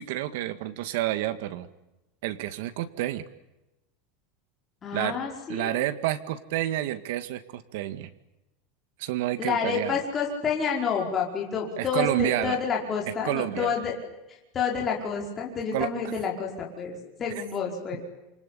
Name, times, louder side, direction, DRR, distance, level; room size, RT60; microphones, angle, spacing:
voice 1, 0.0-1.7 2.2-3.2 4.9-5.2 5.5-8.1 9.0-9.9 11.8-12.6 13.2-13.7 15.7-15.9, right 14 dB, 65° right, 11 dB, 2.0 m, -29 dB
voice 2, 4.8-5.8 9.4-13.9 14.3-18.0, left 6 dB, 20° left, -1 dB, 5.2 m, -29 dB
27.5 x 25.0 x 8.7 m, 0.98 s
supercardioid pair, 170°, 0 cm